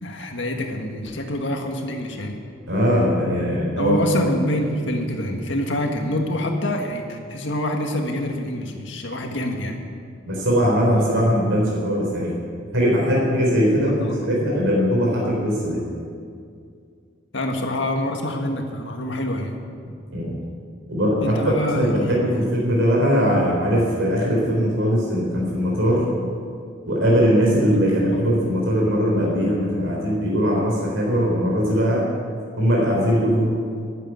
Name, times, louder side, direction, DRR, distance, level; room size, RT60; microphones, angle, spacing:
voice 1, 0.0-2.4 3.8-9.8 14.0-14.1 17.3-19.6 21.2-22.4, left 1 dB, 70° left, 3 dB, 1.8 m, -26 dB
voice 2, 2.7-4.0 10.3-12.4 12.7-15.8 20.1-20.3 20.9-26.0 26.9-32.1 32.6-33.5, equal, 85° right, -3 dB, 3.7 m, -20 dB
11.0 x 10.0 x 9.2 m, 2.2 s
head